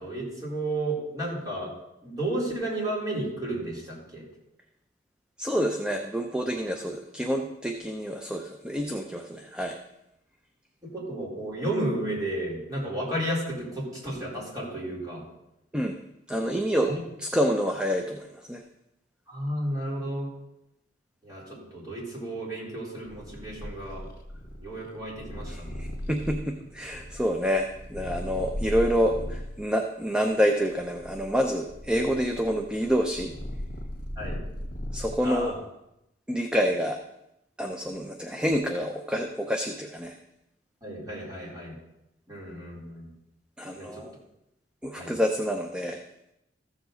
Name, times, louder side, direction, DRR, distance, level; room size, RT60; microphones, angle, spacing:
voice 1, 0.0-1.7 2.0-4.2 10.8-15.2 16.9-17.0 19.3-20.3 21.2-21.4 21.7-24.1 24.6-25.7 34.2-34.4 35.2-35.5 40.8-41.7 42.3-43.1 43.8-44.0 45.0-45.1, right 1 dB, 20° right, -5 dB, 3.8 m, -32 dB
voice 2, 5.4-9.8 15.7-16.0 16.3-16.9 17.2-18.6 25.5-33.3 34.9-35.5 36.3-37.0 37.6-40.2 43.6-44.1 44.8-46.0, equal, 5° right, 3 dB, 0.6 m, -27 dB
Purr, 23.1-29.6 30.3-35.5, equal, 55° left, 1.8 m, -37 dB
14.5 x 7.2 x 3.9 m, 0.85 s
head